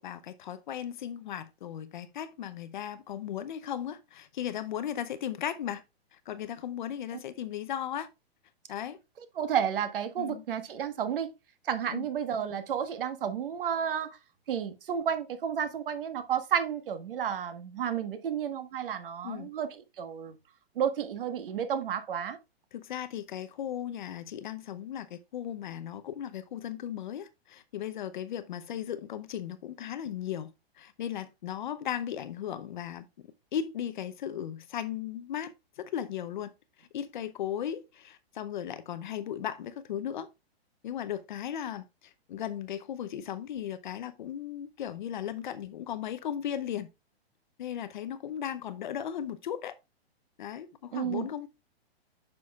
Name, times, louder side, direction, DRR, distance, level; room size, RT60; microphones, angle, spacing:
voice 1, 0.0-5.8 6.1-8.1 8.7-9.0 10.2-10.4 11.9-12.1 19.2-19.5 22.7-36.5 36.8-40.3 40.8-46.9 47.6-49.7 50.4-51.5, left 10 dB, 50° left, 0.7 m, -36 dB
voice 2, 9.4-11.3 11.6-14.1 14.5-20.4 20.7-22.4 50.9-51.3, right 8 dB, 55° right, 1.4 m, -31 dB
9.5 x 6.1 x 2.3 m
hypercardioid pair, 165°, 32 cm